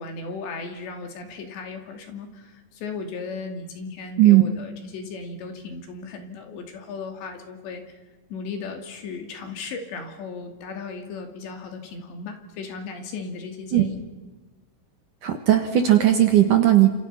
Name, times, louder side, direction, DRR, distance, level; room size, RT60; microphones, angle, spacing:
voice 1, 0.0-7.8 8.3-14.0, left 4 dB, 70° left, 5 dB, 4.9 m, -36 dB
voice 2, 15.2-16.9, right 13 dB, 60° right, 6 dB, 2.4 m, -16 dB
29.5 x 27.5 x 5.8 m, 1.2 s
omnidirectional pair, 5.3 m